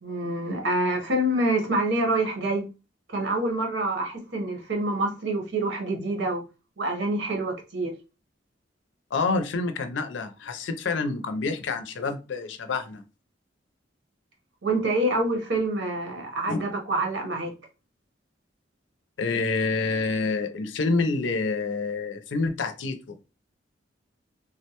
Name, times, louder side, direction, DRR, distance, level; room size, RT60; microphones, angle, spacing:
voice 1, 0.0-2.7 3.1-6.4 6.8-7.9 14.6-17.5, right 1 dB, 75° right, 0.9 m, -26 dB
voice 2, 9.1-13.0 16.5-16.6 19.2-23.3, left 3 dB, 80° left, 0.5 m, -27 dB
3.6 x 2.1 x 2.8 m
head